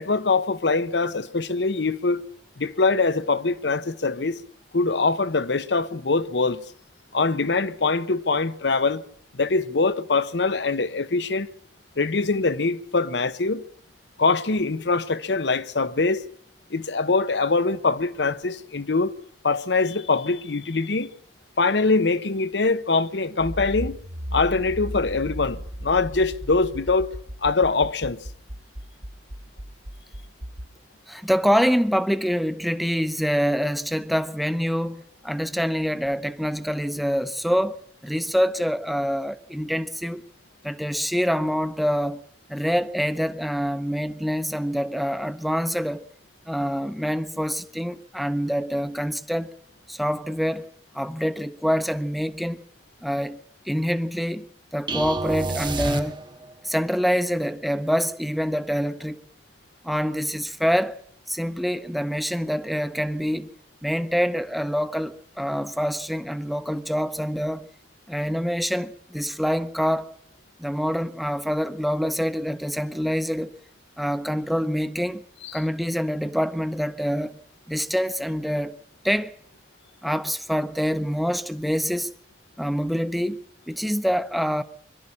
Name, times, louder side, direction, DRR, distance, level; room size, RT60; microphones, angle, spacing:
voice 1, 0.0-2.2 2.6-4.4 4.7-6.6 7.1-9.0 9.3-11.5 12.0-13.6 14.2-16.2 16.7-19.1 19.4-21.1 21.6-24.0 24.3-28.2 75.4-75.5, left 3 dB, 80° left, 0.9 m, -23 dB
Accelerating revving vroom, 23.4-30.7, equal, 70° right, 1.8 m, -36 dB
voice 2, 31.1-37.8 38.0-40.2 40.6-42.2 42.5-46.0 46.5-49.6 49.9-50.7 50.9-52.6 53.0-53.4 53.7-54.4 54.7-56.2 56.6-59.2 59.8-61.0 61.3-63.5 63.8-67.7 68.1-70.1 70.6-73.5 74.0-75.2 75.5-77.4 77.7-78.8 79.0-79.3 80.0-82.1 82.6-84.6, equal, ahead, 0.8 m, -25 dB
sound 1, 54.9-56.6, right 2 dB, 25° right, 1.1 m, -29 dB
22.5 x 12.5 x 9.8 m
head